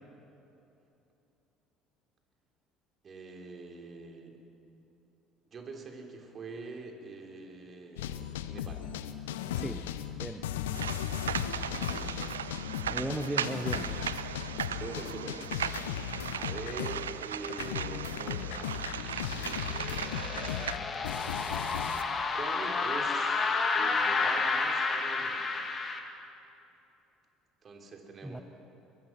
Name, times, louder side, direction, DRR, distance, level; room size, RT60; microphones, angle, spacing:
voice 1, 3.0-4.4 5.5-8.9 11.7-12.3 14.7-16.1 16.3-18.8 19.1-19.7 22.3-25.6 27.6-28.4, right 3 dB, 40° right, 2 dB, 3.4 m, -44 dB
sound 1, 8.0-17.2 17.5-22.0, left 10 dB, 75° left, 0.8 m, -37 dB
voice 2, 9.5-9.9 10.2-10.5 12.9-13.9 28.2-28.4, right 1 dB, 5° right, 6 dB, 1.1 m, -36 dB
sound 2, 10.7-20.7, right 9 dB, 85° right, 0.5 m, -37 dB
sound 3, 18.3-26.0, left 4 dB, 35° left, 2.2 m, -31 dB
22.0 x 22.0 x 6.0 m, 2.9 s
figure-of-eight pair, 60°, 0 cm